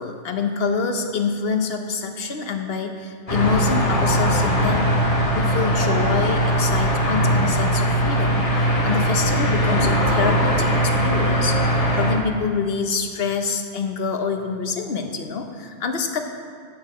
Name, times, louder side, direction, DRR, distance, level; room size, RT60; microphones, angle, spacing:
voice 1, 0.0-5.0 5.3-11.6 11.9-16.2, left 5 dB, 60° left, 5 dB, 1.0 m, -26 dB
sound 1, 3.3-12.2, right 1 dB, 30° left, 1.3 m, -20 dB
7.9 x 7.5 x 6.2 m, 2.2 s
omnidirectional pair, 1.2 m